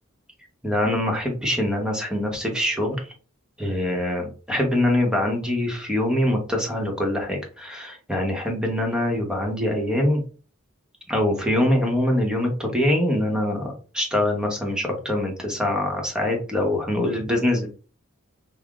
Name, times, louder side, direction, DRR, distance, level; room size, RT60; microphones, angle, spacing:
voice 1, 0.6-3.0 3.6-10.2 11.1-17.7, left 1 dB, 5° right, 1 dB, 0.9 m, -24 dB
5.4 x 2.0 x 2.3 m, 0.37 s
head